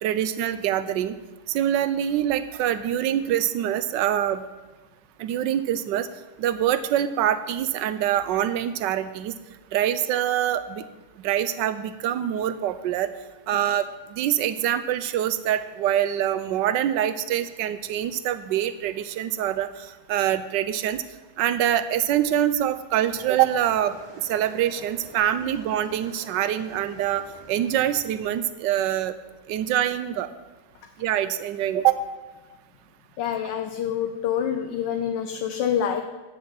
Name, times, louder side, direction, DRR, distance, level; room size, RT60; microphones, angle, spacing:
voice 1, 0.0-1.2 1.5-4.4 5.2-6.1 6.4-9.3 9.7-10.8 11.2-13.1 13.5-21.0 21.4-24.0 24.2-29.1 29.5-30.3 31.0-32.0, right 11 dB, 80° right, 13 dB, 1.3 m, -25 dB
sound 1, 23.0-28.5, right 3 dB, 30° right, 0.5 m, -47 dB
voice 2, 33.2-36.0, left 9 dB, 80° left, 6 dB, 1.4 m, -26 dB
9.5 x 7.2 x 7.6 m, 1.1 s
omnidirectional pair, 1.9 m